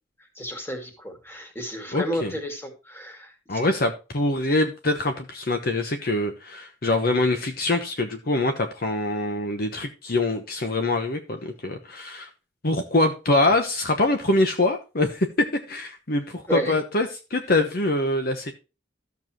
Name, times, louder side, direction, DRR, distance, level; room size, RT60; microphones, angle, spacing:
voice 1, 0.4-3.6 16.5-16.7, equal, 15° left, 3 dB, 2.4 m, -32 dB
voice 2, 1.9-2.3 3.5-12.3 12.6-15.3 15.7-18.5, left 2 dB, 55° left, 6 dB, 1.1 m, -24 dB
13.5 x 7.2 x 3.0 m, 0.30 s
head